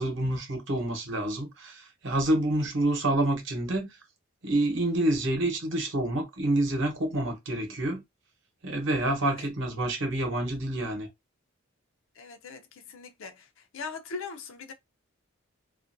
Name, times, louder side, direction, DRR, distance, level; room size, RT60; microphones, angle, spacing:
voice 1, 0.0-3.9 4.4-8.0 8.6-11.1, right 1 dB, 60° right, 0.8 m, -28 dB
voice 2, 12.2-12.6 12.9-13.3 13.7-14.7, left 4 dB, 70° left, 0.5 m, -39 dB
2.4 x 2.2 x 2.5 m
head